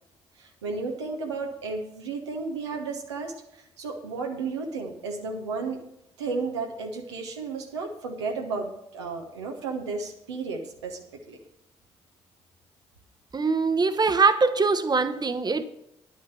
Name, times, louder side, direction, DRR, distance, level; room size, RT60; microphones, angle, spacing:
voice 1, 0.4-5.8 6.2-11.4, right 4 dB, 90° right, 1 dB, 1.1 m, -33 dB
voice 2, 13.3-15.6, right 4 dB, 30° right, 12 dB, 0.9 m, -22 dB
10.5 x 6.3 x 6.8 m, 0.81 s
hypercardioid pair, 45°, 14 cm